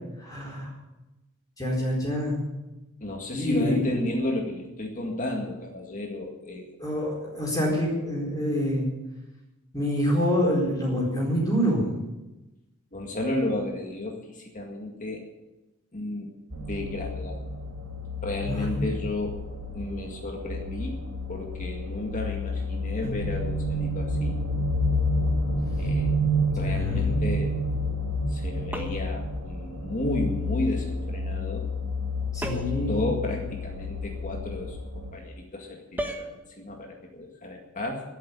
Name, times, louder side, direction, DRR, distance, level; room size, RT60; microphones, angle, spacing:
voice 1, 0.2-0.7 1.6-2.4 3.3-3.8 6.8-8.9 9.7-11.8 18.4-18.9 23.0-23.1 26.6-27.1 32.3-32.9, equal, 15° left, -4 dB, 4.5 m, -26 dB
voice 2, 3.0-6.7 7.6-7.7 12.9-15.2 15.9-16.3 16.6-17.5 18.2-21.0 21.3-24.4 25.8-26.1 26.6-27.5 28.3-31.7 32.5-38.0, left 1 dB, 35° left, 1 dB, 2.0 m, -33 dB
sound 1, 16.5-35.1, left 1 dB, 70° right, 2.4 m, -29 dB
sound 2, 28.7-29.2 32.4-32.9 36.0-36.3, right 1 dB, 10° right, 1.4 m, -34 dB
12.5 x 8.6 x 9.9 m, 1.0 s
head